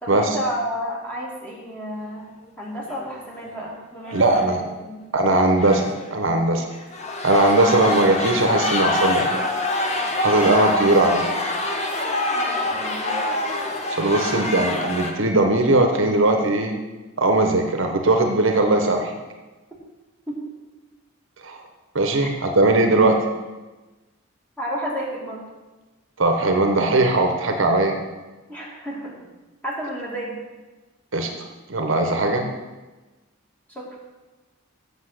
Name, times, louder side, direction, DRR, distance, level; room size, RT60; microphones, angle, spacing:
voice 1, 0.0-2.3 2.6-5.0 12.3-13.2 20.3-20.4 22.2-22.3 24.6-25.4 28.5-29.2 29.6-30.4 33.7-33.9, equal, 5° left, -4 dB, 2.2 m, -31 dB
sound 1, 2.9-3.1 3.3-3.4 4.1-4.5 5.6-6.1 6.7-15.1, left 2 dB, 30° left, 0.9 m, -25 dB
voice 2, 4.1-4.6 5.1-6.7 7.2-9.4 10.2-11.3 14.0-16.7 17.2-19.1 21.4-21.6 21.9-23.2 26.2-27.9 31.1-31.3 31.7-32.5, right 2 dB, 60° right, 4 dB, 0.9 m, -19 dB
8.0 x 6.7 x 6.5 m, 1.2 s
head